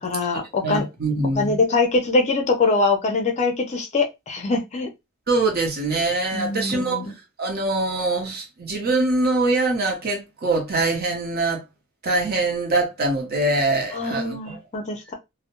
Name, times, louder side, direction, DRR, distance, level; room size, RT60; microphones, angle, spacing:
voice 1, 0.0-0.9 1.4-4.9 6.3-7.1 13.9-15.1, left 3 dB, 30° left, 0.5 m, -23 dB
voice 2, 0.6-1.6 5.3-7.1 7.4-11.6 12.0-14.6, right 2 dB, 45° right, 0.7 m, -23 dB
2.2 x 2.0 x 2.9 m
head